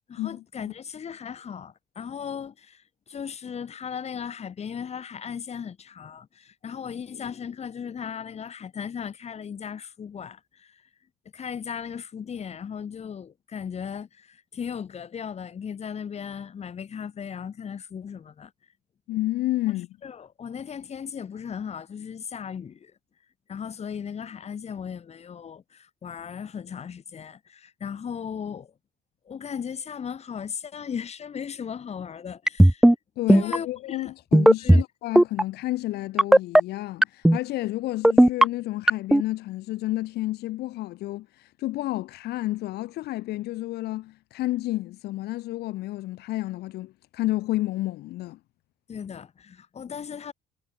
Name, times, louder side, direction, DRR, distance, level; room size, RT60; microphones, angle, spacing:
voice 1, 0.1-10.8 11.3-18.5 20.0-22.9 23.5-28.7 29.3-32.9 33.3-34.1 34.6-34.8 48.9-50.3, left 7 dB, 40° left, 2.5 m, -37 dB
voice 2, 19.1-19.9 33.2-48.4, left 17 dB, 75° left, 0.8 m, -30 dB
sound 1, 32.5-32.9 33.3-33.6 34.3-34.8 35.2-35.4 36.2-36.6 37.0-37.4 38.0-38.4 38.9-39.2, right 1 dB, 5° right, 0.3 m, -14 dB
cardioid pair, 110°, 17 cm